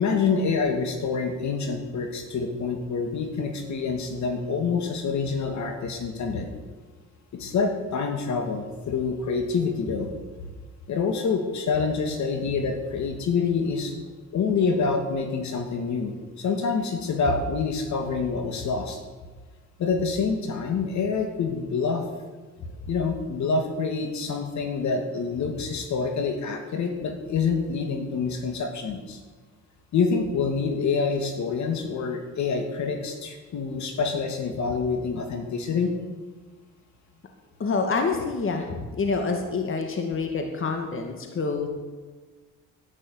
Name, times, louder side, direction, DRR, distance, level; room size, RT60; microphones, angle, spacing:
voice 1, 0.0-6.5 7.3-10.1 10.9-13.9 14.3-19.0 19.8-22.0 22.9-29.2 29.9-35.9, left 5 dB, 70° left, 4 dB, 2.5 m, -26 dB
voice 2, 37.6-41.7, left 4 dB, 45° left, 4 dB, 2.2 m, -27 dB
11.0 x 10.0 x 9.6 m, 1.3 s
cardioid pair, 90°, 30 cm